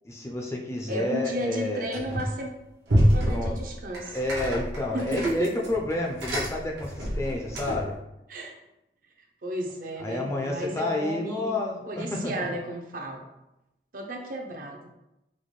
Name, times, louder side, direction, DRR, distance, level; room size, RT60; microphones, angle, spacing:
voice 1, 0.0-1.9 3.3-3.5 4.1-7.9 10.0-12.5, left 2 dB, 15° left, 0 dB, 0.4 m, -30 dB
voice 2, 0.9-2.5 3.1-4.2 4.9-5.5 8.3-8.6 9.4-11.6 11.9-13.2 13.9-14.8, right 1 dB, 50° right, 2 dB, 0.5 m, -33 dB
sound 1, 1.9-2.4 2.9-8.0, equal, 85° right, 0.8 m, -27 dB
4.1 x 2.1 x 3.1 m, 0.90 s
head